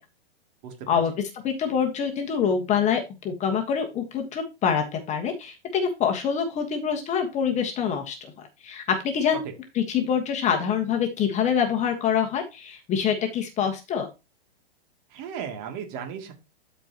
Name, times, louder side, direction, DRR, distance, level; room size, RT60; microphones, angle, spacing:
voice 1, 0.6-1.0 15.1-16.3, right 7 dB, 40° right, 3 dB, 2.6 m, -36 dB
voice 2, 1.4-9.4 9.7-14.1, left 7 dB, 25° left, 4 dB, 1.4 m, -25 dB
12.5 x 4.6 x 2.9 m, 0.25 s
hypercardioid pair, 130°, 31 cm